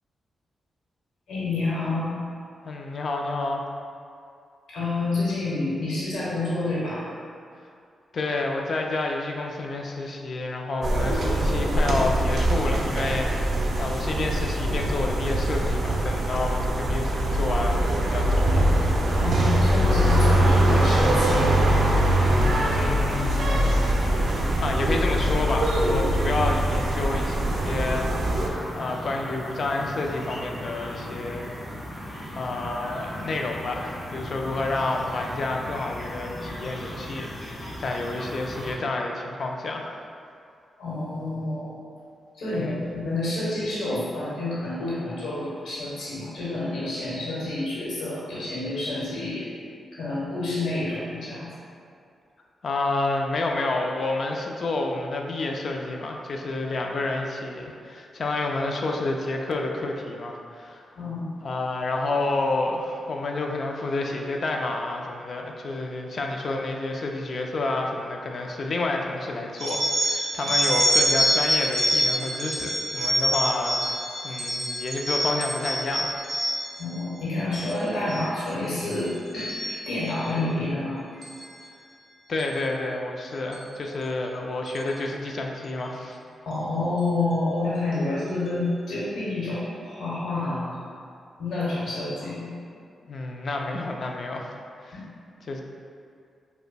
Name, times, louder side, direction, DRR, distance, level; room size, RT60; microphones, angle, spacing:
voice 1, 1.3-2.1 4.7-7.1 19.1-21.6 40.8-41.7 42.3-49.5 49.9-51.5 60.9-61.2 70.4-70.5 76.8-81.0 86.4-90.7 91.4-92.5 94.9-95.0, left 2 dB, 85° left, -7 dB, 1.0 m, -28 dB
voice 2, 2.6-3.6 8.1-18.7 22.7-23.6 24.6-28.1 28.8-31.4 32.3-39.9 42.5-42.8 52.6-60.8 61.4-76.1 82.3-86.2 93.1-94.5 94.8-95.0 95.5-95.6, left 2 dB, 55° left, 1 dB, 0.3 m, -29 dB
sound 1, 10.8-28.5, right 1 dB, 70° right, 0.4 m, -22 dB
sound 2, 19.8-38.7, left 1 dB, 35° left, 1.1 m, -36 dB
sound 3, 69.6-76.9 77.4-77.8 78.1-78.5 78.9-80.3 81.2-81.5 82.4-82.6 83.5-83.6 84.0-84.1 84.7-84.9, equal, 35° right, 0.9 m, -26 dB
5.1 x 2.1 x 2.2 m, 2.4 s
cardioid pair, 80°, 0 cm